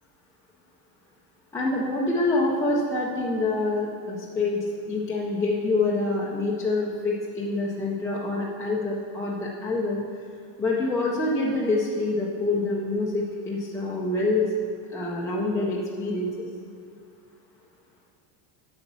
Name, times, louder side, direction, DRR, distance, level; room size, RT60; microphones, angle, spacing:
voice 1, 1.5-10.0 10.6-14.5 14.9-16.5, left 2 dB, 5° left, -5 dB, 0.4 m, -26 dB
8.2 x 5.8 x 6.9 m, 2.3 s
supercardioid pair, 150°, 49 cm